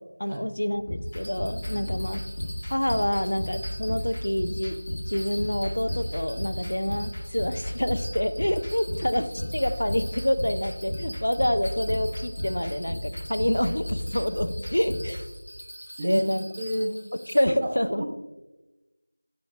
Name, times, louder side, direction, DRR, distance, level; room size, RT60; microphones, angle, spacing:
voice 1, 0.0-2.3 2.7-4.8 5.1-9.3 9.5-15.2 16.0-16.5 17.3-18.1, equal, 65° left, 10 dB, 0.4 m, -27 dB
sound 1, 0.7-15.2, left 1 dB, 20° left, 1.0 m, -34 dB
Bell, 1.1-17.4, equal, 85° right, 0.8 m, -44 dB
voice 2, 16.6-17.0 17.5-18.1, right 1 dB, 15° right, 0 dB, 0.4 m, -31 dB
7.6 x 5.1 x 2.5 m, 1.1 s
figure-of-eight pair, 175°, 0 cm